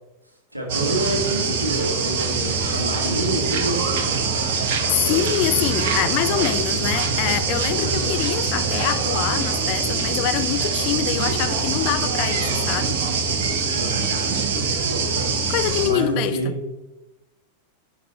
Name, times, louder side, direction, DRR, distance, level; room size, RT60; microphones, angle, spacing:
voice 1, 0.5-4.0 7.8-8.1 12.2-12.8 13.7-14.2 15.8-16.5, right 1 dB, 85° right, 0 dB, 1.5 m, -28 dB
sound 1, 0.7-15.9, right 4 dB, 55° right, 1.3 m, -23 dB
voice 2, 4.5-13.0 15.5-16.6, left 14 dB, 45° left, 12 dB, 0.5 m, -25 dB
10.0 x 5.9 x 3.1 m, 1.1 s
figure-of-eight pair, 90°, 0 cm